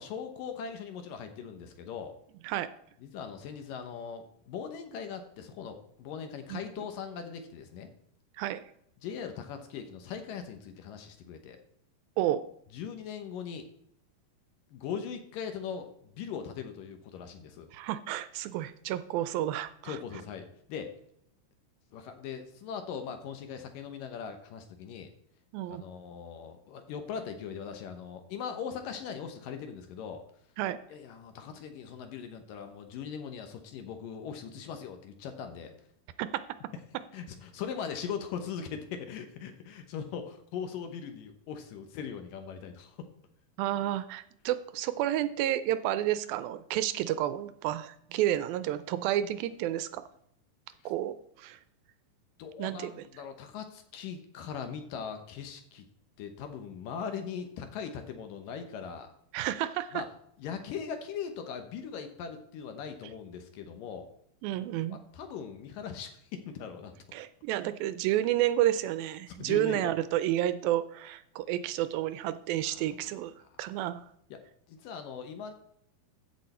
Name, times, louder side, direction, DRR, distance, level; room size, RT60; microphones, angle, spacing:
voice 1, 0.0-2.2 3.0-7.9 9.0-11.6 12.7-13.7 14.7-17.7 19.8-20.9 21.9-25.1 25.7-30.2 30.9-35.7 37.1-43.0 52.4-55.9 56.2-59.1 59.9-60.1 60.4-64.1 64.9-66.9 69.3-69.9 72.6-72.8 74.3-74.4 74.7-75.5, left 7 dB, 70° left, 7 dB, 2.5 m, -40 dB
voice 2, 17.7-20.0 25.5-25.8 30.6-30.8 36.2-36.3 43.6-50.0 50.9-51.6 52.6-53.1 59.3-60.0 64.4-65.0 67.1-73.3 73.6-74.1, right 13 dB, 80° right, 13 dB, 2.3 m, -30 dB
15.0 x 6.4 x 4.3 m, 0.71 s
omnidirectional pair, 4.3 m